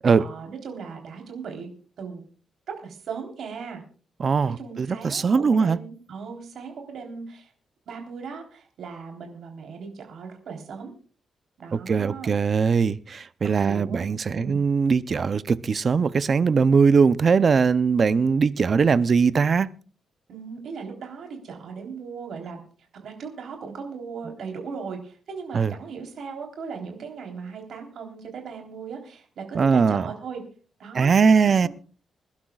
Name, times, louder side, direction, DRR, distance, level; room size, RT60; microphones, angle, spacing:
voice 1, 0.2-1.7 2.0-2.2 2.8-3.8 4.5-7.5 7.9-10.9 11.6-12.3 13.6-14.1 14.3-14.6 20.3-22.6 23.0-30.4 30.8-31.1 31.6-31.7, right 5 dB, 70° right, 3.6 m, -37 dB
voice 2, 4.2-5.8 11.7-19.7 25.5-25.7 29.5-30.0 30.9-31.7, right 5 dB, 40° right, 0.5 m, -20 dB
26.5 x 11.5 x 2.4 m
wide cardioid pair, 135°, 0 cm